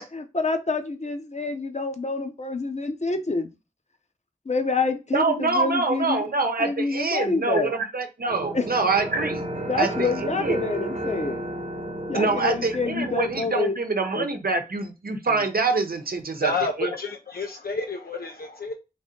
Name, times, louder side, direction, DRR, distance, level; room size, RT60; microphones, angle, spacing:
voice 1, 0.1-3.5 4.5-6.3 6.6-7.7 8.5-8.6 9.7-11.4 12.1-13.7 14.1-14.2, left 3 dB, 50° left, 0.8 m, -27 dB
voice 2, 5.1-9.4 9.8-10.7 12.1-16.5 16.8-16.9, right 3 dB, 80° right, 0.8 m, -25 dB
sound 1, 8.3-13.5, right 1 dB, 50° right, 0.9 m, -33 dB
voice 3, 16.3-18.7, left 3 dB, 85° left, 0.5 m, -29 dB
3.9 x 2.8 x 3.7 m
wide cardioid pair, 50°, 15 cm